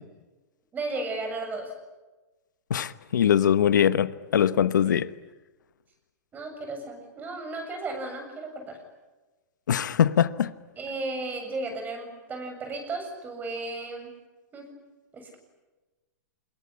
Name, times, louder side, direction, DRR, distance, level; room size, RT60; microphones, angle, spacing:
voice 1, 0.7-1.7 6.3-8.8 10.8-14.1 14.5-14.7 15.1-15.4, right 2 dB, 15° right, 7.4 m, -34 dB
voice 2, 2.7-5.1 9.7-10.5, left 9 dB, 90° left, 1.1 m, -22 dB
27.0 x 21.5 x 9.9 m
hypercardioid pair, 145°, 10 cm